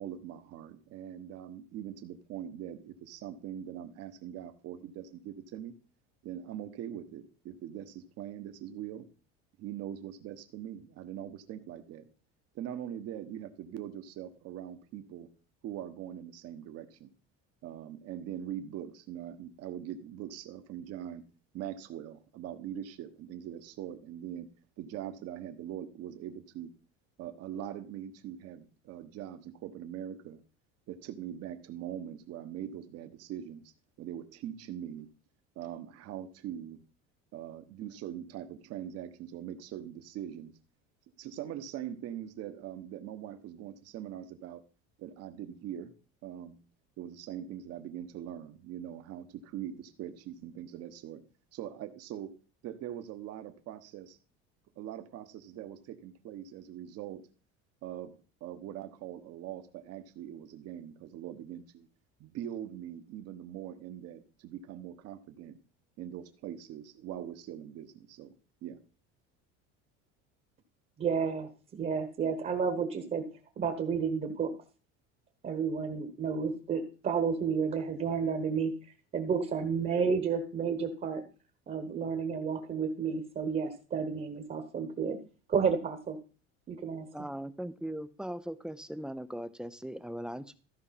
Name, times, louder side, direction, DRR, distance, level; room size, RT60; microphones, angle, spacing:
voice 1, 0.0-5.8 6.2-9.1 9.6-12.1 12.5-15.3 15.6-17.1 17.6-21.2 21.5-24.5 24.8-26.7 27.2-30.4 30.9-33.7 34.0-35.1 35.5-36.8 37.3-40.5 41.2-44.6 45.0-45.9 46.2-46.6 47.0-51.2 51.5-52.3 52.6-54.2 54.8-57.2 57.8-61.9 62.2-65.6 66.0-68.3 68.6-68.8, right 10 dB, 55° right, 8 dB, 1.3 m, -42 dB
voice 2, 71.0-73.2 73.6-74.5 75.4-78.7 79.1-81.2 81.7-85.2 85.5-86.2 86.7-87.3, right 6 dB, 30° right, 6 dB, 1.3 m, -31 dB
voice 3, 87.1-90.5, right 1 dB, 5° right, 13 dB, 0.5 m, -39 dB
14.0 x 4.8 x 5.8 m, 0.37 s
cardioid pair, 135°, 29 cm